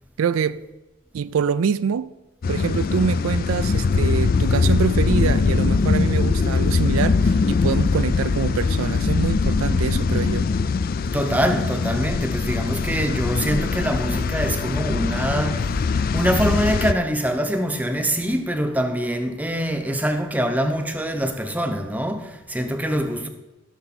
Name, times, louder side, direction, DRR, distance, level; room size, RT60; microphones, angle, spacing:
voice 1, 0.2-0.6 1.1-2.1 2.5-10.5, right 6 dB, 80° right, 0.4 m, -25 dB
sound 1, 2.4-16.9, left 4 dB, 45° left, 0.3 m, -22 dB
voice 2, 11.1-15.9 16.1-23.3, equal, 5° right, 0.7 m, -24 dB
16.0 x 6.5 x 4.1 m
head